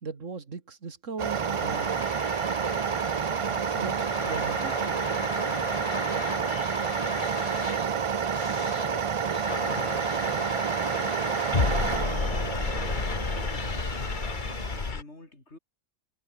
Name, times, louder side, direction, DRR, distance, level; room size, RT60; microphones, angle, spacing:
voice 1, 0.0-2.0 3.5-4.7, right 4 dB, 80° right, 2.6 m, -38 dB
sound 1, 1.2-14.9, right 7 dB, 50° right, 0.4 m, -29 dB
sound 2, 1.3-15.0, left 4 dB, 40° left, 1.5 m, -33 dB
voice 2, 9.7-11.5 12.2-14.0 14.9-15.6, left 2 dB, 60° left, 5.9 m, -49 dB
omnidirectional pair, 1.3 m